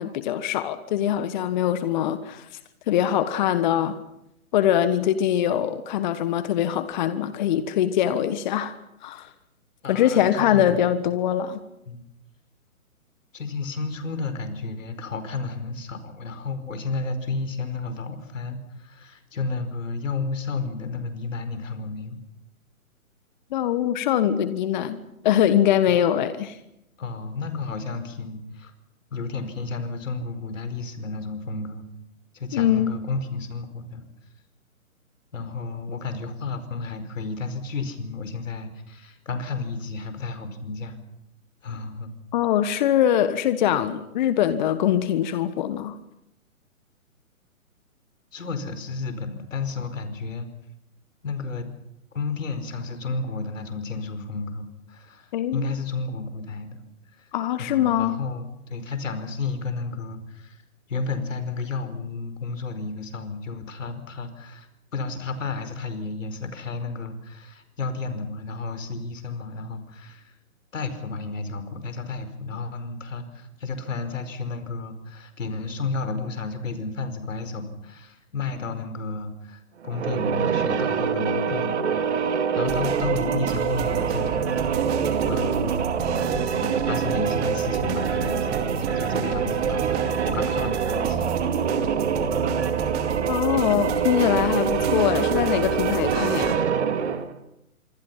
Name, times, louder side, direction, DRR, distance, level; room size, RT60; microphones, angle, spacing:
voice 1, 0.0-2.5 2.9-4.0 4.5-8.7 9.0-9.3 9.9-11.6 23.5-26.6 32.5-33.0 42.3-46.0 55.3-55.7 57.3-58.2 93.3-96.6, left 10 dB, 35° left, 12 dB, 1.4 m, -23 dB
voice 2, 9.8-10.8 11.9-12.0 13.3-22.2 25.9-26.0 27.0-28.7 29.1-31.9 32.3-34.1 35.3-41.0 41.6-42.1 48.3-50.5 51.2-51.7 52.1-56.8 57.1-57.3 57.6-60.6 60.9-70.3 70.7-84.7 85.2-88.6 88.9-91.8, left 3 dB, 65° left, 9 dB, 5.0 m, -32 dB
sound 1, 79.8-97.3, right 7 dB, 50° right, 2.9 m, -25 dB
sound 2, 82.6-96.6, right 8 dB, 25° right, 2.5 m, -31 dB
26.5 x 25.0 x 5.8 m, 0.83 s
figure-of-eight pair, 135°, 42 cm